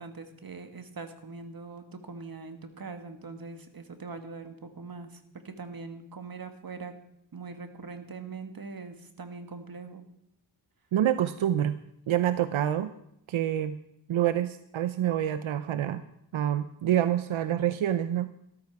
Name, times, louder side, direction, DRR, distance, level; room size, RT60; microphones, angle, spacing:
voice 1, 0.0-6.9 7.3-10.0, right 4 dB, 50° right, 7 dB, 1.8 m, -42 dB
voice 2, 10.9-11.8 12.1-12.9 13.3-13.8 14.1-16.0 16.3-18.3, right 11 dB, 85° right, 12 dB, 0.7 m, -27 dB
13.5 x 13.0 x 4.7 m, 0.77 s
cardioid pair, 65°, 47 cm